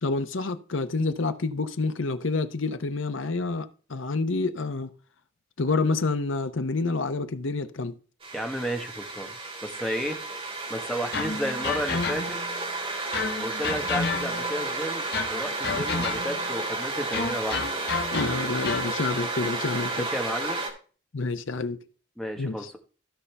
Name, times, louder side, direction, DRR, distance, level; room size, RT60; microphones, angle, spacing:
voice 1, 0.0-4.9 5.6-7.9 18.1-20.1 21.1-21.8 22.4-22.7, left 3 dB, 75° left, 0.9 m, -28 dB
sound 1, 8.2-20.7, right 2 dB, 25° right, 2.0 m, -32 dB
voice 2, 8.3-9.3 9.6-10.2 10.7-12.4 13.4-17.6 19.9-20.6 22.2-22.8, equal, 5° left, 1.3 m, -32 dB
sound 2, 11.1-12.5 13.1-14.6 15.1-16.5 17.1-19.0, left 4 dB, 50° left, 1.0 m, -31 dB
15.0 x 5.5 x 3.4 m
head